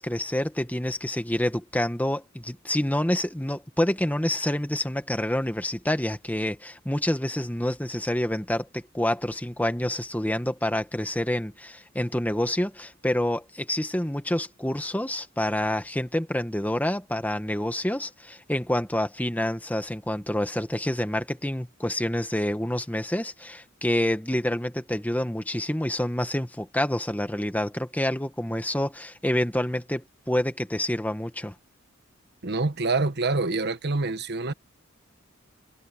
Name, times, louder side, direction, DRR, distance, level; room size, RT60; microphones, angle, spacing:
voice 1, 0.0-31.5, left 1 dB, 10° left, 1.6 m, -27 dB
voice 2, 32.4-34.5, right 3 dB, 55° right, 1.4 m, -26 dB
head